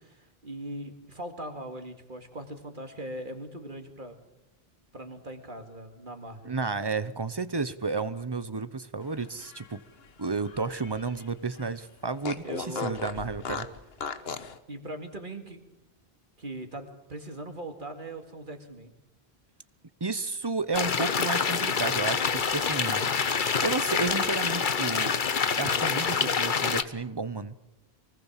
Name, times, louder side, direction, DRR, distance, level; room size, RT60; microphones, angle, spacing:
voice 1, 0.0-4.1 4.9-6.5 12.4-13.1 13.6-13.7 14.7-15.6 16.4-18.9, right 1 dB, 50° right, 5 dB, 2.4 m, -40 dB
voice 2, 6.4-9.8 10.2-13.7 20.0-23.1 23.6-25.1 25.6-27.5, right 4 dB, 25° right, 14 dB, 0.9 m, -32 dB
Fart, 9.2-11.3 11.6-11.7 12.2-14.6, left 5 dB, 70° left, 1.4 m, -37 dB
sound 1, 20.7-26.8, left 6 dB, 55° left, 1.1 m, -26 dB
24.5 x 19.0 x 7.4 m, 0.93 s
omnidirectional pair, 1.1 m